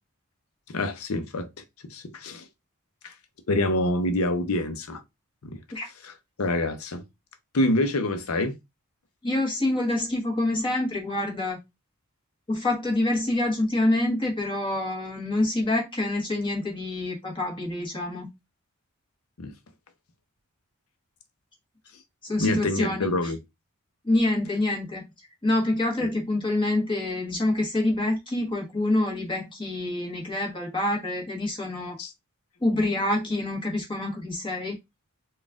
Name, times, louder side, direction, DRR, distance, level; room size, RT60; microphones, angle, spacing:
voice 1, 0.7-1.5 1.9-2.5 3.0-3.1 3.5-5.0 5.4-5.6 6.0-6.1 6.4-7.0 7.5-8.5 19.4-19.5 22.4-23.4 32.0-32.1, left 1 dB, 85° left, 0.7 m, -26 dB
voice 2, 9.2-11.6 12.5-18.3 22.2-23.3 24.0-25.0 25.4-32.0 32.6-34.7, left 1 dB, 20° left, 1.3 m, -26 dB
4.1 x 2.5 x 3.5 m
head